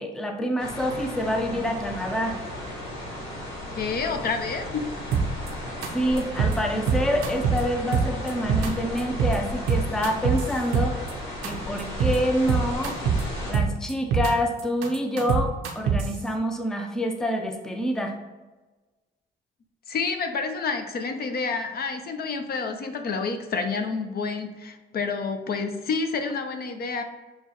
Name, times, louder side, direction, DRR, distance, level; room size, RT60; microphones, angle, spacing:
voice 1, 0.0-2.4 5.9-11.0 11.4-13.0 13.5-18.1, equal, 5° left, 4 dB, 0.5 m, -27 dB
sound 1, 0.6-13.5, left 1 dB, 90° left, 1.3 m, -35 dB
voice 2, 3.7-4.9 19.9-27.0, left 4 dB, 50° left, 6 dB, 0.5 m, -29 dB
sound 2, 5.1-5.5 5.8-5.9 6.2-6.6 6.9-7.6 7.9-8.7 9.0-9.4 9.7-11.1 11.4-11.5 11.8-12.2 12.5-13.2 13.5-14.3 14.6-16.1, right 6 dB, 85° right, 0.7 m, -23 dB
6.4 x 2.2 x 2.9 m, 1.2 s
cardioid pair, 90°, 20 cm